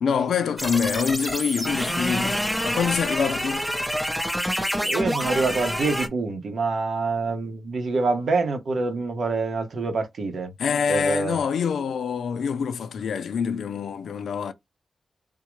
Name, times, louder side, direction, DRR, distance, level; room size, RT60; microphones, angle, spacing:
voice 1, 0.0-3.6 10.6-14.5, left 6 dB, 85° left, 0.5 m, -25 dB
sound 1, 0.6-6.1, equal, 5° right, 0.6 m, -27 dB
voice 2, 4.8-10.5 10.9-11.4, right 3 dB, 65° right, 0.9 m, -26 dB
3.7 x 2.1 x 3.0 m
wide cardioid pair, 130°, 0 cm